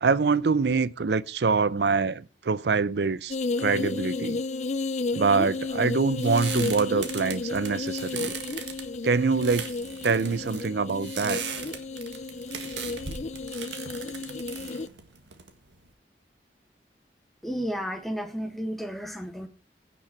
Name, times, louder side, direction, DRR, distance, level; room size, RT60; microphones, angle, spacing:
voice 1, 0.0-4.4 5.1-8.3 9.0-9.6 10.0-11.4, right 4 dB, 70° right, 0.5 m, -25 dB
sound 1, 3.3-14.9, left 3 dB, 40° left, 0.5 m, -32 dB
sound 2, 5.5-15.9, right 6 dB, 85° right, 1.7 m, -39 dB
voice 2, 17.4-19.5, equal, ahead, 1.4 m, -32 dB
16.0 x 6.2 x 4.4 m
head